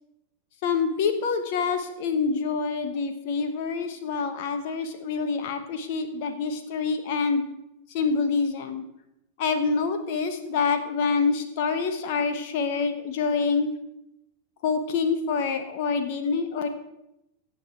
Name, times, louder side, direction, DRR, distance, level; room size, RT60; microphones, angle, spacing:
voice 1, 0.6-7.4 7.9-8.8 9.4-13.7 14.6-16.7, left 5 dB, 50° left, 8 dB, 1.2 m, -26 dB
17.5 x 7.2 x 4.6 m, 0.85 s
figure-of-eight pair, 90°, 0 cm